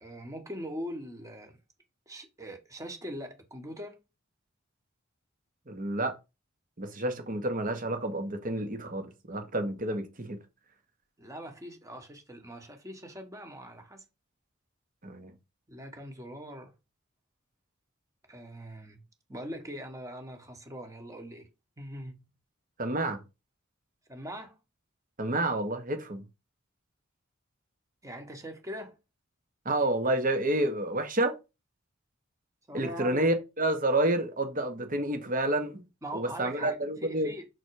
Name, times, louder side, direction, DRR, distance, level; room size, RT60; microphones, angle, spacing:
voice 1, 0.0-1.6 2.1-4.0 11.2-14.0 15.7-16.7 18.3-19.0 19.3-21.5 21.8-22.2 24.1-24.6 28.0-29.0 32.7-33.3 36.0-36.7 37.0-37.5, equal, 15° right, 1.4 m, -41 dB
voice 2, 5.7-6.1 6.8-10.4 15.0-15.3 22.8-23.2 25.2-26.2 29.6-31.3 32.7-35.8 36.1-37.3, right 1 dB, 40° right, 1.4 m, -29 dB
6.2 x 4.1 x 4.8 m
head